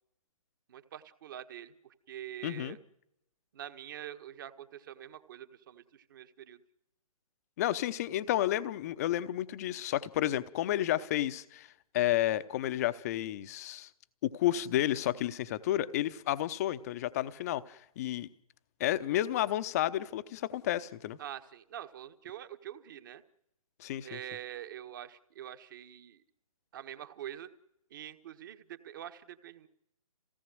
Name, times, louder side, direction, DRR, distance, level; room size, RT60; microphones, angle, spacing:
voice 1, 0.7-2.8 3.5-6.6 21.2-23.2 24.0-26.2 26.7-27.5 27.9-29.7, right 11 dB, 35° right, 9 dB, 1.4 m, -45 dB
voice 2, 2.4-2.8 7.6-13.9 14.2-18.3 18.8-21.2 23.8-24.2, left 13 dB, 25° left, 14 dB, 0.8 m, -31 dB
27.5 x 18.0 x 7.8 m, 0.83 s
figure-of-eight pair, 135°, 19 cm